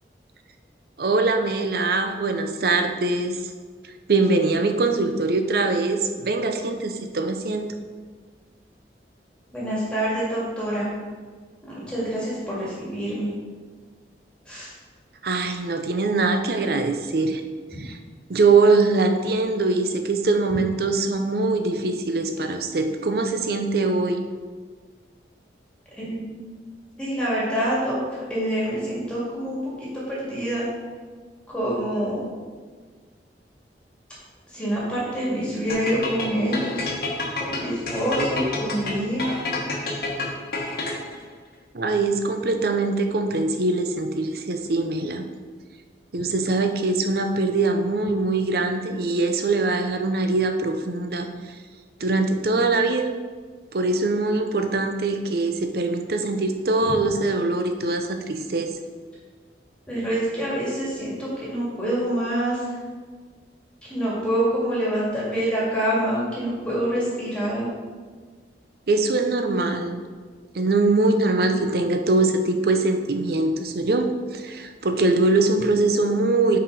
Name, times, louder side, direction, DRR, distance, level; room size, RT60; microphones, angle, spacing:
voice 1, 1.0-3.4 4.1-7.7 15.2-17.4 17.8-18.0 18.3-24.2 41.7-45.2 46.1-51.3 52.0-53.1 53.7-58.8 68.9-70.0 70.5-76.6, right 3 dB, 60° right, 6 dB, 0.6 m, -22 dB
voice 2, 9.5-10.9 11.9-13.3 14.5-14.7 26.0-26.5 27.0-30.7 31.5-32.2 34.5-36.9 37.4-39.4 59.9-62.6 63.8-67.7, right 1 dB, 5° left, -8 dB, 2.1 m, -26 dB
sound 1, 35.7-41.2, left 3 dB, 60° left, 1.1 m, -29 dB
6.0 x 4.9 x 5.3 m, 1.5 s
head